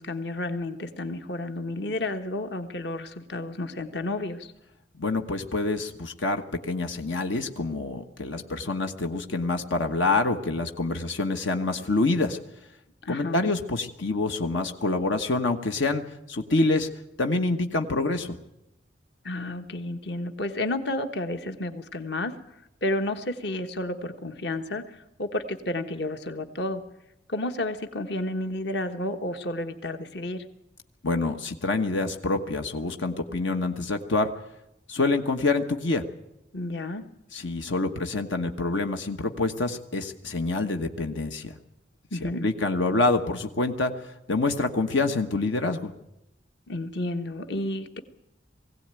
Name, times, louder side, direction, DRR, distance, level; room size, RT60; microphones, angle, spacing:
voice 1, 0.0-4.5 13.0-13.5 19.2-22.4 22.8-26.8 27.3-30.4 36.5-37.0 42.1-42.5 46.7-48.0, left 1 dB, 60° left, 7 dB, 1.3 m, -31 dB
voice 2, 5.0-12.4 13.1-16.0 16.3-16.9 17.2-18.4 31.0-34.3 34.9-36.0 37.3-41.5 42.2-44.0 44.3-45.9, left 3 dB, 80° left, 5 dB, 1.3 m, -26 dB
21.0 x 16.5 x 9.0 m, 0.88 s
head